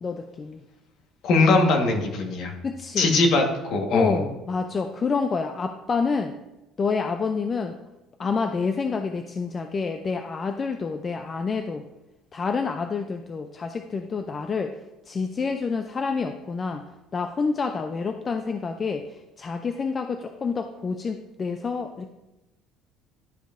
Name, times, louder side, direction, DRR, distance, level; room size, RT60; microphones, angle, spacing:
voice 1, 0.0-0.6 2.6-3.1 3.9-6.4 6.8-7.8 8.2-11.8 12.3-14.8 15.1-16.9 17.1-22.1, left 4 dB, 25° left, 6 dB, 0.3 m, -28 dB
voice 2, 1.2-2.5 3.0-4.1, left 3 dB, 50° left, 3 dB, 1.3 m, -21 dB
11.5 x 5.2 x 2.5 m, 0.99 s
cardioid pair, 160°, 0 cm